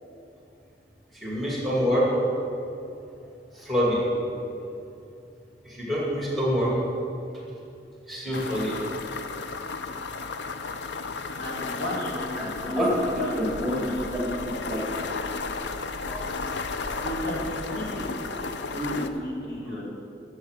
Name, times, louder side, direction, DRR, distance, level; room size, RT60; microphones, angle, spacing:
voice 1, 1.1-2.1 3.5-4.0 5.6-6.7 8.1-8.7 12.4-12.5 12.8-12.9 13.4-13.7 14.7-15.2 16.0-16.3 16.9-17.0 17.7-17.9, equal, ahead, -5 dB, 2.3 m, -27 dB
sound 1, 8.3-19.1, left 4 dB, 75° left, 0.6 m, -34 dB
voice 2, 11.4-12.8 13.2-14.2 17.0-18.1 18.7-19.8, left 1 dB, 55° left, -5 dB, 2.7 m, -33 dB
12.0 x 7.2 x 6.5 m, 2.7 s
head